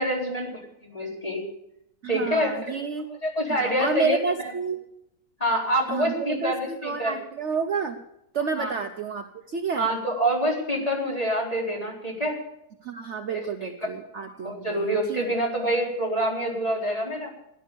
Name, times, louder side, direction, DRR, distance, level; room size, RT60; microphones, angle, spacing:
voice 1, 0.0-1.4 2.1-2.5 3.1-4.5 5.4-7.1 8.6-8.7 9.8-12.4 13.3-13.7 14.2-17.3, equal, 25° left, -2 dB, 4.1 m, -26 dB
voice 2, 2.0-3.1 3.5-4.8 5.9-8.0 8.3-9.9 12.8-15.2, right 5 dB, 55° right, 6 dB, 1.0 m, -30 dB
16.5 x 11.0 x 6.9 m, 0.81 s
omnidirectional pair, 1.6 m